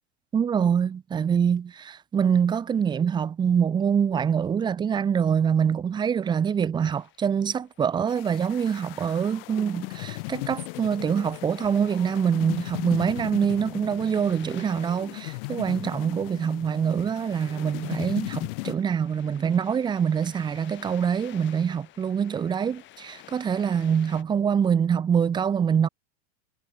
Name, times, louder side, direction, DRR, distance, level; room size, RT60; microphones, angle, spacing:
voice 1, 0.3-25.9, right 7 dB, 15° right, 0.7 m, -25 dB
sound 1, 6.8-24.2, left 15 dB, 30° left, 2.8 m, -52 dB
sound 2, 8.1-18.7, left 26 dB, 55° left, 2.2 m, -37 dB
supercardioid pair, 140°, 35 cm